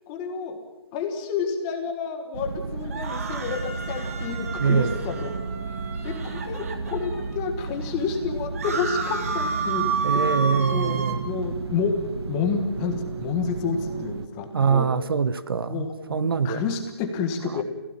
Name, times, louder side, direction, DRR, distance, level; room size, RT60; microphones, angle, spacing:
voice 1, 0.1-0.6 0.9-5.3 6.0-10.3 10.7-14.9 15.7-17.6, left 5 dB, 10° left, 5 dB, 1.4 m, -30 dB
sound 1, 2.3-14.3, right 4 dB, 80° right, 1.2 m, -34 dB
sound 2, 2.6-15.3, right 7 dB, 15° right, 2.7 m, -41 dB
sound 3, 2.8-7.3 7.8-7.9 8.1-11.2, right 4 dB, 35° right, 2.4 m, -31 dB
voice 2, 4.6-5.0 10.0-11.2 14.5-16.6, right 6 dB, 60° right, 14 dB, 1.3 m, -24 dB
29.0 x 16.5 x 8.9 m, 1.0 s
hypercardioid pair, 180°, 13 cm